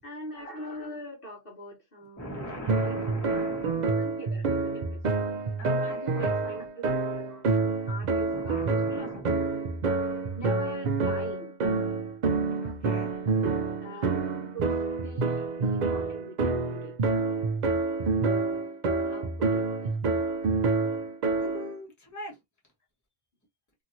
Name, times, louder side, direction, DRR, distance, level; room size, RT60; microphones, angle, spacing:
voice 1, 0.0-2.5 2.9-3.5 4.0-5.2 5.7-6.9 7.1-9.2 10.3-11.5 13.8-17.0 19.0-20.0, equal, 50° left, 1.4 m, -43 dB
voice 2, 2.2-4.0 5.6-6.7 8.1-9.4 12.5-13.7 21.4-22.4, left 1 dB, 15° left, 1.2 m, -41 dB
sound 1, 2.7-21.7, right 3 dB, 55° right, 0.5 m, -28 dB
2.9 x 2.8 x 2.6 m
omnidirectional pair, 1.3 m